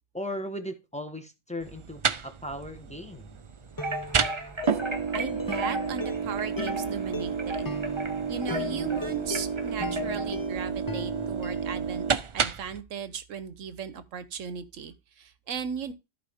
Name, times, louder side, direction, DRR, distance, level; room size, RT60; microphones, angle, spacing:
voice 1, 0.1-3.4, left 1 dB, 5° left, 1.3 m, -37 dB
sound 1, 1.6-12.8, right 6 dB, 45° right, 0.4 m, -31 dB
sound 2, 2.9-3.2 3.8-11.8, left 2 dB, 25° left, 0.5 m, -39 dB
sound 3, 3.8-10.4, equal, 25° right, 1.2 m, -36 dB
voice 2, 5.1-7.8 8.3-12.0 12.3-15.9, right 7 dB, 80° right, 1.3 m, -36 dB
13.5 x 4.8 x 3.5 m
omnidirectional pair, 1.3 m